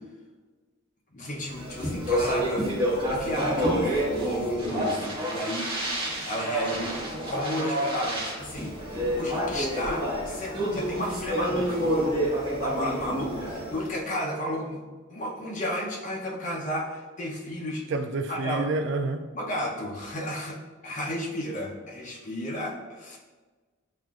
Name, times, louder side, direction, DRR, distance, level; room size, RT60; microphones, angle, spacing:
voice 1, 1.1-2.7 3.0-14.8 15.1-17.9 18.3-18.7 19.3-20.6 20.8-23.2, equal, 35° left, -2 dB, 0.7 m, -33 dB
Speech, 1.5-13.9, equal, 25° right, 1.1 m, -28 dB
voice 2, 17.9-19.3, right 3 dB, 55° right, 7 dB, 0.3 m, -28 dB
7.3 x 2.4 x 2.4 m, 1.3 s
head